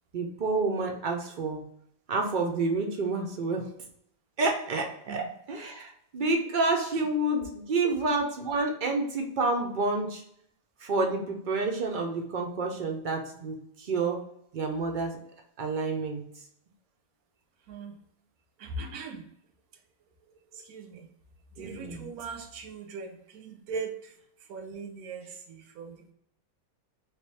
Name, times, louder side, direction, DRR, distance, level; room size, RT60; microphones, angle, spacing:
voice 1, 0.1-1.6 2.1-3.6 4.4-10.2 10.8-14.2 14.5-15.2 15.6-16.2 21.6-22.1, right 3 dB, 65° right, 2 dB, 0.5 m, -29 dB
voice 2, 18.6-19.2 20.7-21.1 21.6-23.9 24.5-25.2 25.5-25.9, right 4 dB, 90° right, 4 dB, 1.2 m, -39 dB
3.1 x 2.9 x 3.1 m, 0.72 s
omnidirectional pair, 1.5 m